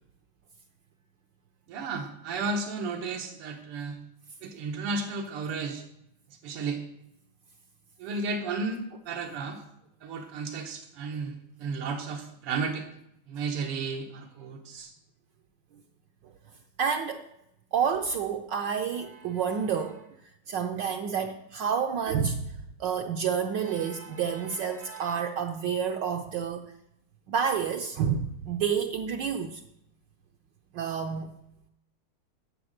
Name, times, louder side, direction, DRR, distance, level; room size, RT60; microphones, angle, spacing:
voice 1, 1.7-4.0 4.4-5.8 6.4-6.8 8.0-9.6 10.0-12.9 13.3-14.9, right 4 dB, 90° right, 2.0 m, -33 dB
voice 2, 16.8-17.3 17.7-20.1 20.5-26.7 27.3-29.6 30.7-31.3, right 7 dB, 70° right, 1.1 m, -29 dB
10.0 x 7.2 x 6.4 m
omnidirectional pair, 2.4 m